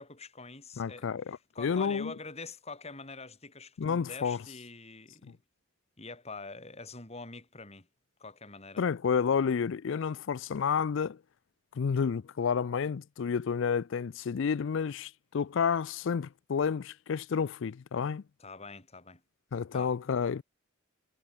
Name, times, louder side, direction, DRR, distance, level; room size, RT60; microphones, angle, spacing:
voice 1, 0.0-5.4 6.0-7.9 8.2-8.8 18.4-19.2 19.7-19.9, left 3 dB, 30° left, 3.5 m, -45 dB
voice 2, 0.8-2.1 3.8-4.4 5.3-5.4 8.8-11.2 11.7-18.2 19.5-20.4, left 6 dB, 60° left, 0.4 m, -30 dB
head